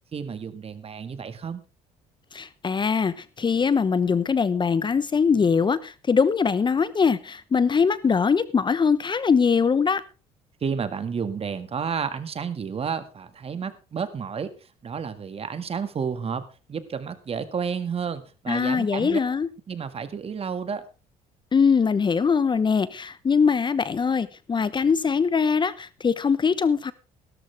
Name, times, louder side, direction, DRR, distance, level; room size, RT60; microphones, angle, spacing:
voice 1, 0.1-1.6 10.6-14.5 14.8-19.2 19.7-20.8, right 6 dB, 40° right, 1.9 m, -31 dB
voice 2, 2.3-10.0 18.5-19.5 21.5-26.9, left 5 dB, 30° left, 0.9 m, -22 dB
16.5 x 13.0 x 3.4 m
cardioid pair, 90°, 15 cm